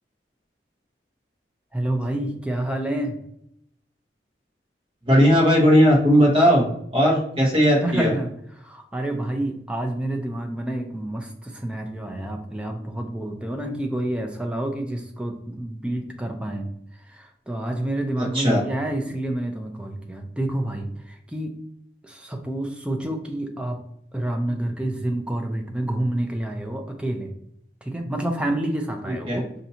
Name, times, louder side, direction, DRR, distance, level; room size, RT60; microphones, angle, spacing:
voice 1, 1.7-3.2 7.8-8.3 8.6-16.7 17.1-21.5 22.0-23.8 24.1-27.3 27.8-29.5, right 1 dB, 5° right, 3 dB, 0.4 m, -28 dB
voice 2, 5.1-6.6 6.9-8.1 18.2-18.6 29.3-29.4, equal, 30° right, -2 dB, 1.1 m, -17 dB
5.3 x 2.6 x 2.8 m, 0.74 s
head